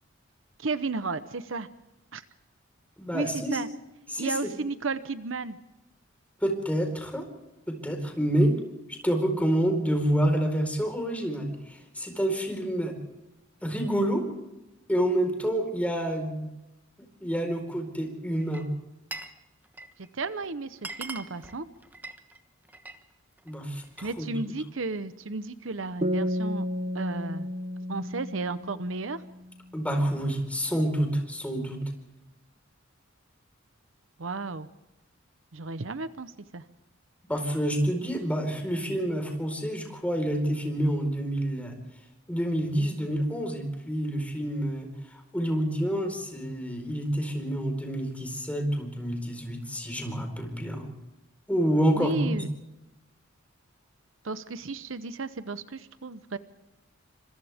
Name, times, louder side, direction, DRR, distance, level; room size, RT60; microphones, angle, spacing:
voice 1, 0.6-1.7 2.1-2.2 3.1-3.7 4.2-5.6 20.0-21.7 24.0-26.7 26.9-27.5 27.9-29.2 34.2-34.7 35.5-36.6 51.9-52.5 54.2-56.4, right 3 dB, 75° right, 12 dB, 0.9 m, -33 dB
voice 2, 3.0-3.6 4.1-4.3 6.4-7.3 7.7-8.6 9.0-12.9 13.6-14.3 14.9-16.5 17.2-18.7 23.4-24.3 29.7-31.9 37.3-41.8 42.3-44.9 45.3-50.9 51.5-52.4, equal, 5° left, 3 dB, 4.5 m, -28 dB
Glass, 18.4-19.4 19.6-20.1 20.4-20.5 20.7-23.0 23.4-24.1, right 2 dB, 10° right, 1.2 m, -42 dB
sound 1, 26.0-29.5, equal, 35° right, 1.0 m, -32 dB
28.5 x 25.5 x 3.6 m, 0.99 s
head